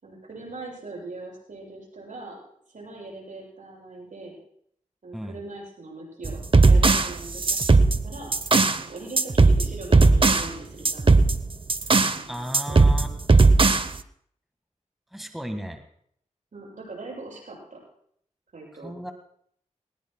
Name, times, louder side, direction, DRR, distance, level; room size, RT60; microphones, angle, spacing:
voice 1, 0.0-2.4 2.7-4.4 5.0-8.3 8.8-11.3 12.2-12.8 16.5-17.8 18.5-18.9, right 2 dB, 80° right, -3 dB, 7.3 m, -41 dB
sound 1, 6.3-8.8 9.2-10.5 10.9-12.2 12.5-14.0, right 3 dB, 40° right, 0.7 m, -18 dB
voice 2, 12.3-13.1 15.1-15.8 18.7-19.1, equal, ahead, 5 dB, 1.6 m, -34 dB
20.5 x 20.0 x 2.2 m, 0.67 s
wide cardioid pair, 60°, 13 cm